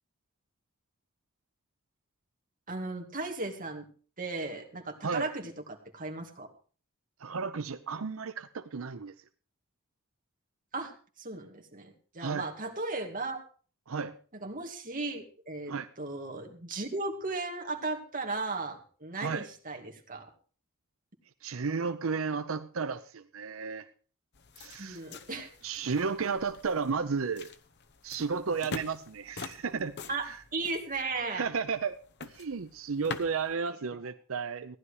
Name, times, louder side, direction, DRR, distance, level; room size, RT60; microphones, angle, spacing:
voice 1, 2.7-3.8 4.2-6.5 10.7-13.4 14.4-20.3 24.8-25.5 28.5-28.6 30.1-31.5, right 3 dB, 40° right, 4 dB, 2.4 m, -36 dB
voice 2, 7.2-9.1 12.2-12.5 13.9-14.2 15.7-15.9 19.2-19.5 21.4-23.9 24.6-25.0 25.6-27.5 28.0-30.0 30.3-30.4 31.3-32.0 32.3-34.8, right 5 dB, 90° right, 10 dB, 0.7 m, -33 dB
sound 1, 24.3-33.5, left 4 dB, 55° left, 1.0 m, -45 dB
15.5 x 11.0 x 4.8 m, 0.39 s
head